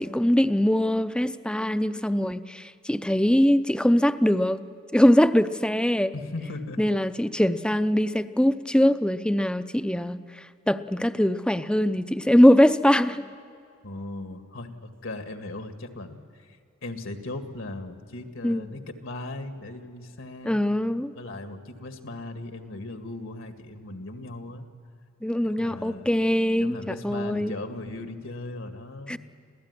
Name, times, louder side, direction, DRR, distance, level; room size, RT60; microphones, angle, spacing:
voice 1, 0.0-6.1 6.8-10.2 10.7-13.3 18.4-18.7 20.4-21.1 25.2-27.5 29.1-29.2, equal, 5° left, 11 dB, 0.6 m, -22 dB
voice 2, 6.1-6.8 13.8-20.6 21.2-24.6 25.4-26.1 26.6-29.2, left 2 dB, 75° left, 6 dB, 2.1 m, -38 dB
27.0 x 16.0 x 9.7 m, 2.4 s
head